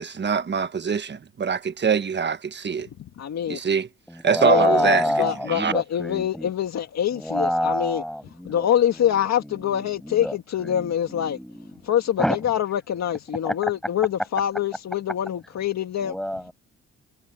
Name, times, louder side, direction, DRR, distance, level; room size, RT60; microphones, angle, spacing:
voice 1, 0.0-2.9 3.5-3.9 4.2-5.0 5.5-5.7, right 6 dB, 35° right, 1.5 m, -23 dB
voice 2, 3.0-3.6 4.4-8.0 8.4-11.4 11.8-16.2, left 10 dB, 60° left, 1.9 m, -25 dB
voice 3, 4.1-6.5 7.1-8.7 9.7-11.7 12.2-12.4 13.4-13.5 16.0-16.5, equal, ahead, 7.3 m, -27 dB
cardioid pair, 90°, 30 cm